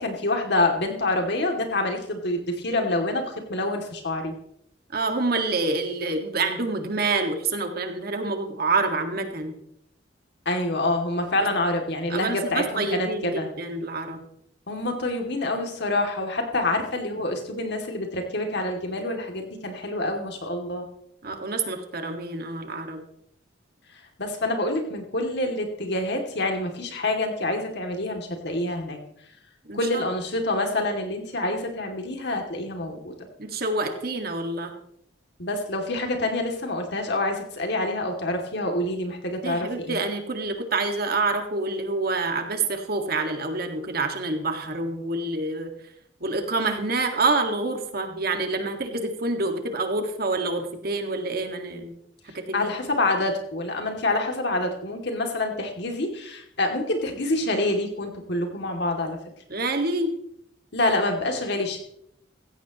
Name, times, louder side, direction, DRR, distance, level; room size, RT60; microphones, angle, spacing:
voice 1, 0.0-4.3 10.5-13.5 14.7-20.9 24.2-29.0 29.7-33.1 35.4-40.0 52.5-59.2 60.7-61.8, left 2 dB, 60° left, 3 dB, 2.5 m, -27 dB
voice 2, 4.9-9.5 12.1-14.2 21.2-23.0 29.7-30.1 33.4-34.7 39.4-45.7 46.2-51.9 52.3-52.7 59.5-60.2, right 3 dB, 55° right, 5 dB, 1.8 m, -27 dB
16.0 x 15.5 x 3.0 m, 0.71 s
head